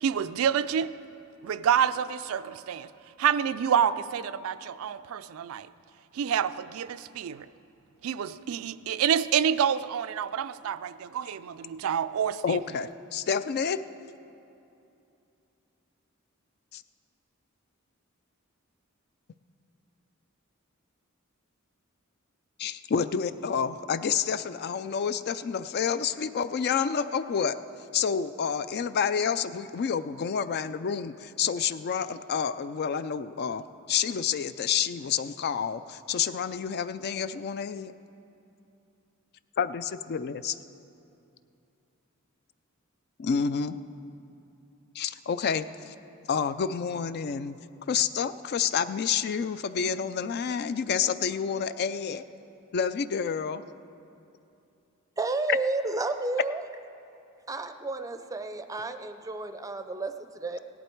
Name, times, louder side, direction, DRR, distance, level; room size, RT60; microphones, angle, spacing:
voice 1, 0.0-0.9 1.4-2.9 3.2-5.7 6.1-7.5 8.0-12.6, right 8 dB, 80° right, 0.3 m, -28 dB
voice 2, 12.4-13.8 16.7-16.8 22.6-27.6 27.9-33.6 33.9-37.9 39.6-40.6 43.2-43.8 45.0-45.9 46.3-47.6 47.9-52.2 52.7-53.6, left 7 dB, 50° left, 0.4 m, -29 dB
voice 3, 55.2-56.6 57.5-60.6, right 3 dB, 15° right, 0.5 m, -31 dB
17.0 x 11.0 x 4.5 m
head